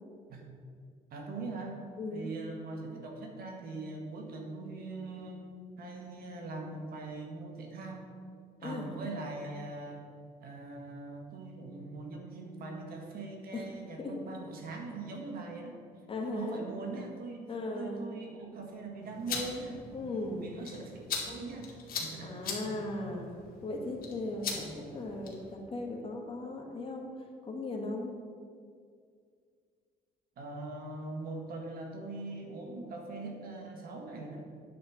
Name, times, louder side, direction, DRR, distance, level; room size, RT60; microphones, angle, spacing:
voice 1, 1.1-1.8 2.1-5.4 5.8-8.1 8.6-10.0 10.4-15.8 16.2-17.5 17.8-22.8 24.5-24.7 30.4-34.5, right 3 dB, 60° right, 1 dB, 1.7 m, -41 dB
voice 2, 2.0-2.3 8.6-8.9 13.5-13.7 14.0-14.1 15.1-15.2 16.1-16.6 17.5-18.0 19.9-20.5 21.3-21.4 22.2-23.3 23.6-27.1 27.4-28.1, left 2 dB, 30° left, 1 dB, 1.6 m, -37 dB
sound 1, 19.0-25.5, left 5 dB, 60° left, 2.0 m, -41 dB
9.4 x 4.3 x 7.2 m, 2.2 s
cardioid pair, 110°, 17 cm